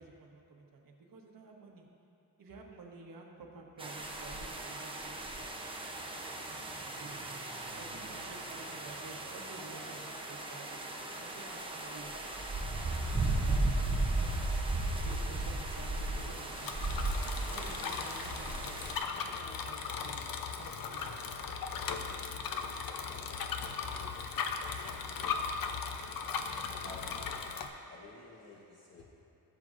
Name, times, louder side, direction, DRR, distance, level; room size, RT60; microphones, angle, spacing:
voice 1, 0.0-1.8 2.4-5.2 6.4-7.2 7.7-12.1 14.0-14.4 15.0-16.8 17.5-19.0 19.4-20.2 20.6-21.2, right 3 dB, 60° right, 0 dB, 1.2 m, -51 dB
sound 1, 3.8-19.0, right 2 dB, 15° right, 0.7 m, -36 dB
sound 2, 8.6-22.0 22.3-22.4, equal, 20° left, 1.1 m, -56 dB
Bicycle, 15.9-27.7, left 5 dB, 60° left, 0.7 m, -38 dB
voice 2, 26.8-27.5 27.8-29.0, left 2 dB, 40° left, -5 dB, 1.1 m, -52 dB
15.5 x 7.7 x 2.5 m, 2.6 s
wide cardioid pair, 165°, 39 cm